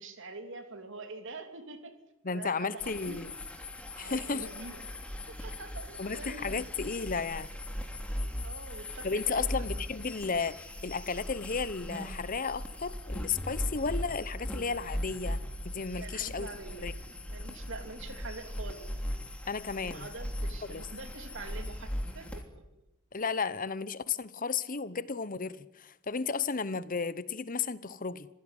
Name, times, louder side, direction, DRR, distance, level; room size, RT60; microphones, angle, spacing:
voice 1, 0.0-1.9 2.3-3.2 3.9-4.9 5.3-6.6 8.4-9.6 15.9-16.9 17.3-18.8 19.8-21.9 22.1-22.4, right 3 dB, 60° right, 3.2 m, -45 dB
voice 2, 2.2-3.3 4.0-4.5 6.0-7.5 9.0-15.4 15.6-16.5 16.8-16.9 19.5-20.1 20.7-20.9 23.1-28.3, left 5 dB, 40° left, 1.0 m, -33 dB
sound 1, 2.8-22.4, equal, 5° left, 3.0 m, -39 dB
26.5 x 16.5 x 9.8 m
head